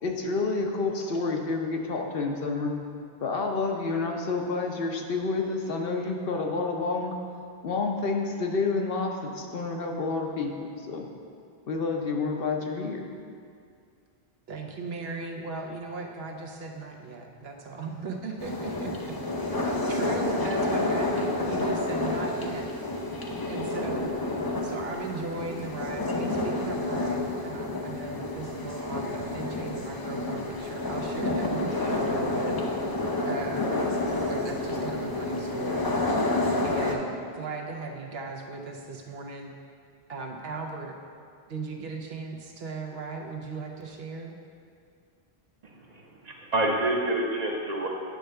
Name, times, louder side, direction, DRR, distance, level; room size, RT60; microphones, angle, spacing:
voice 1, 0.0-2.7 3.2-7.1 7.6-11.1 11.7-13.1, left 3 dB, 65° left, 2 dB, 1.0 m, -29 dB
voice 2, 14.5-22.7 23.5-24.1 24.6-33.8 34.3-36.1 36.6-39.5 40.1-41.0 41.5-44.4, right 3 dB, 75° right, 2 dB, 1.0 m, -37 dB
sound 1, 18.4-36.9, left 2 dB, 25° left, 0.5 m, -29 dB
voice 3, 45.6-47.9, right 1 dB, 45° right, -1 dB, 0.9 m, -28 dB
9.1 x 3.4 x 6.5 m, 2.3 s
omnidirectional pair, 1.0 m